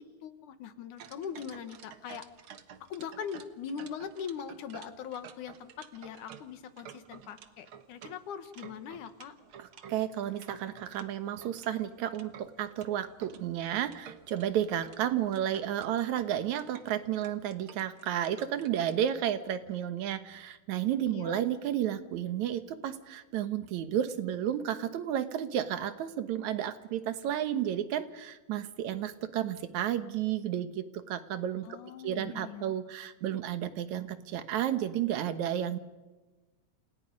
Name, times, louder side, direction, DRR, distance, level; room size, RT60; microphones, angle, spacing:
voice 1, 0.0-2.2 2.9-9.3 21.0-21.4 31.6-32.8, left 7 dB, 75° left, 10 dB, 2.8 m, -41 dB
sound 1, 1.0-11.1 11.4-13.4 13.8-14.5 14.8-15.0 15.3-19.1, right 8 dB, 55° right, 1.7 m, -51 dB
voice 2, 9.6-31.8 32.0-35.8, right 10 dB, 70° right, 11 dB, 2.5 m, -32 dB
30.0 x 28.0 x 5.3 m, 1.1 s
omnidirectional pair, 3.5 m